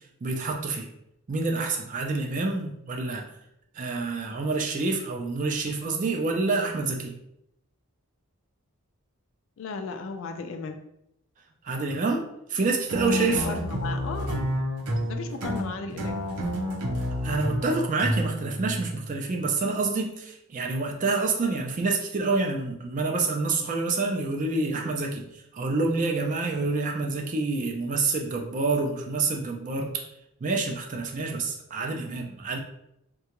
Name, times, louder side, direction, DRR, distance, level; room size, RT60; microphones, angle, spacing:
voice 1, 0.2-0.9 1.3-3.2 3.7-7.1 11.6-12.2 12.5-13.5 17.2-25.2 25.5-30.1 30.4-32.6, right 3 dB, 35° right, 2 dB, 0.3 m, -27 dB
voice 2, 9.6-10.8 13.0-14.5 15.1-16.2, left 4 dB, 60° left, 6 dB, 0.3 m, -35 dB
sound 1, 12.9-19.3, equal, 85° right, 0.7 m, -30 dB
3.7 x 2.2 x 2.9 m, 0.80 s
head